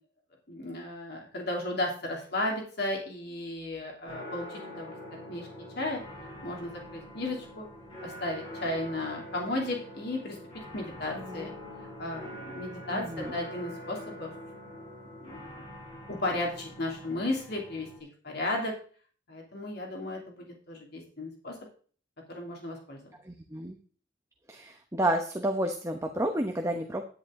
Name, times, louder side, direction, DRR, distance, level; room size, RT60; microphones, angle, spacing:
voice 1, 0.5-4.9 5.3-5.5 5.8-6.0 6.4-7.7 8.0-10.4 10.7-11.5 12.0-14.3 14.7-15.5 16.1-17.9 18.2-18.7 19.3-21.6 22.3-23.2, left 2 dB, 55° left, 0 dB, 2.9 m, -34 dB
sound 1, 4.1-18.0, left 1 dB, 30° left, 5.1 m, -44 dB
voice 2, 11.2-11.5 12.9-13.4 23.3-23.8 24.5-27.0, right 1 dB, 15° right, 3 dB, 1.0 m, -31 dB
10.5 x 10.0 x 3.8 m, 0.43 s
head